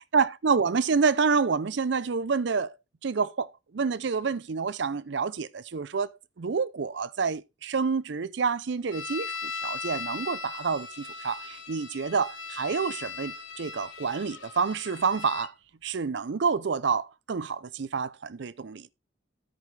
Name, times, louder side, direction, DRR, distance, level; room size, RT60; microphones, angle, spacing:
voice 1, 0.1-2.7 3.0-6.1 6.4-15.5 15.8-18.9, right 5 dB, 65° right, 0.5 m, -28 dB
sound 1, 8.9-15.5, left 5 dB, 80° left, 1.3 m, -38 dB
9.9 x 8.6 x 3.3 m
head